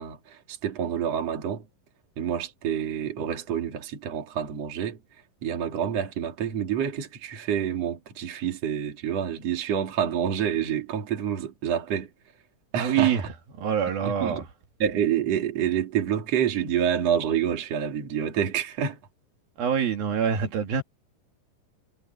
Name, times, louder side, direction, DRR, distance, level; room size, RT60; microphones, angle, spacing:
voice 1, 0.0-1.6 2.2-5.0 5.4-12.1 12.7-13.3 13.9-14.4 14.8-19.0, right 9 dB, 45° right, 3.5 m, -28 dB
voice 2, 12.8-13.3 13.6-14.4 19.6-20.8, right 8 dB, 75° right, 4.1 m, -25 dB
omnidirectional pair, 4.2 m